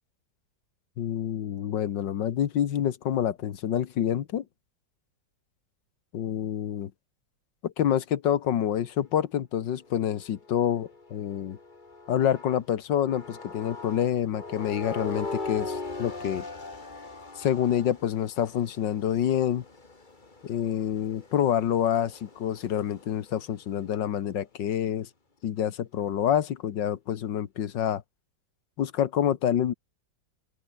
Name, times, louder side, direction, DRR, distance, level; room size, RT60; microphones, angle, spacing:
voice 1, 1.0-4.4 6.1-6.9 7.6-11.6 12.1-16.5 17.4-19.6 20.4-25.1 25.4-28.0 28.8-29.7, left 9 dB, 85° left, 1.9 m, -27 dB
sound 1, 9.8-12.7 13.1-23.5, left 3 dB, 25° left, 2.3 m, -41 dB
open air
omnidirectional pair, 1.9 m